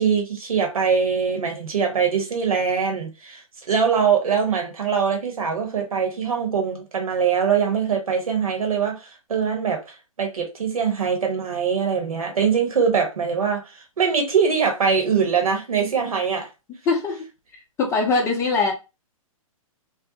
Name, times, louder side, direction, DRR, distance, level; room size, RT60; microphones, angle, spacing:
voice 1, 0.0-16.5, right 6 dB, 75° right, 1.1 m, -23 dB
voice 2, 16.9-17.2 17.8-18.7, left 4 dB, 15° left, 0.5 m, -21 dB
2.5 x 2.0 x 2.8 m
hypercardioid pair, 125°, 18 cm